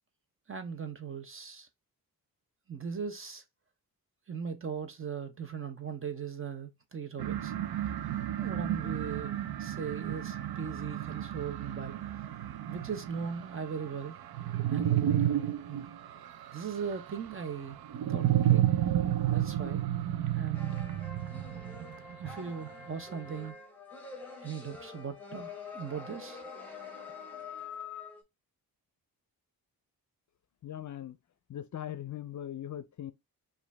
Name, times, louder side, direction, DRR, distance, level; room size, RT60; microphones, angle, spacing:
voice 1, 0.5-1.7 2.7-3.4 4.3-7.8 8.4-12.3 12.6-14.2 14.7-15.9 16.5-17.8 18.1-18.7 19.3-19.8 20.3-20.9 22.2-23.6 24.4-26.4, right 6 dB, 35° right, 0.8 m, -39 dB
sound 1, 7.2-22.7, right 12 dB, 85° right, 0.6 m, -32 dB
sound 2, 20.5-28.2, left 4 dB, 5° left, 1.3 m, -46 dB
voice 2, 30.6-31.2 31.5-33.1, left 11 dB, 50° left, 0.6 m, -40 dB
4.9 x 2.6 x 3.3 m
wide cardioid pair, 140°, 36 cm